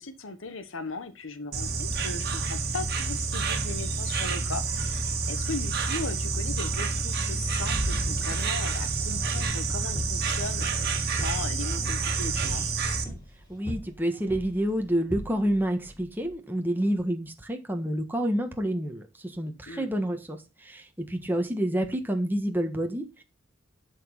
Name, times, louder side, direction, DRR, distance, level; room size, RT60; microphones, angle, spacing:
voice 1, 0.0-12.6 19.7-19.9, left 3 dB, 75° left, 1.2 m, -38 dB
Insect, 1.5-13.0, right 4 dB, 55° right, 1.9 m, -28 dB
sound 1, 7.7-16.3, equal, 20° left, 3.2 m, -41 dB
voice 2, 13.5-23.2, right 1 dB, 10° right, 1.4 m, -28 dB
12.0 x 5.1 x 5.6 m
head